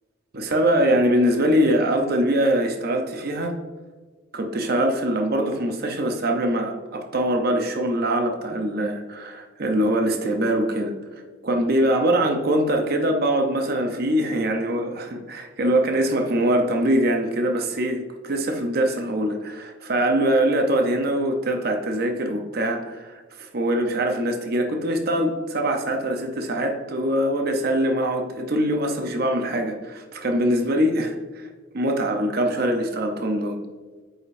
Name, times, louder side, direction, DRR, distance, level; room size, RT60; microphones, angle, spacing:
voice 1, 0.3-3.5 4.3-10.9 11.4-31.5 31.7-33.6, right 1 dB, 50° right, 3 dB, 0.6 m, -23 dB
8.4 x 5.1 x 2.5 m, 1.4 s
head